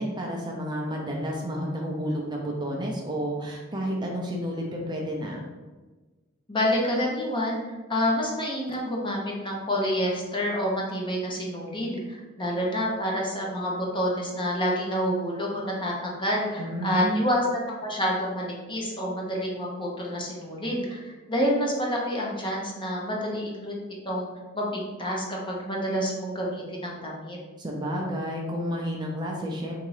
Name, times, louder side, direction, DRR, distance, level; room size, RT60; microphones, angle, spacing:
voice 1, 0.0-5.4 16.6-17.3 27.6-29.8, equal, 20° right, -1 dB, 0.6 m, -30 dB
voice 2, 6.5-7.6 7.9-23.7 24.0-24.3 24.5-27.4, equal, 25° left, -2 dB, 0.9 m, -28 dB
3.7 x 2.8 x 4.8 m, 1.3 s
head